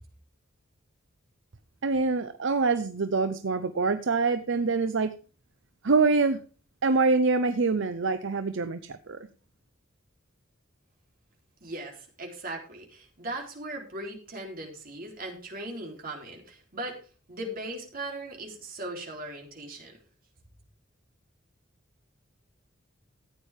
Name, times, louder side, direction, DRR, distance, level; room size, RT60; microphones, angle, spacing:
voice 1, 1.8-5.1 5.8-6.4 6.8-9.2, right 4 dB, 65° right, 10 dB, 0.7 m, -25 dB
voice 2, 11.6-17.0 17.3-19.9, right 1 dB, 45° right, 1 dB, 3.6 m, -38 dB
14.5 x 9.1 x 3.6 m, 0.37 s
head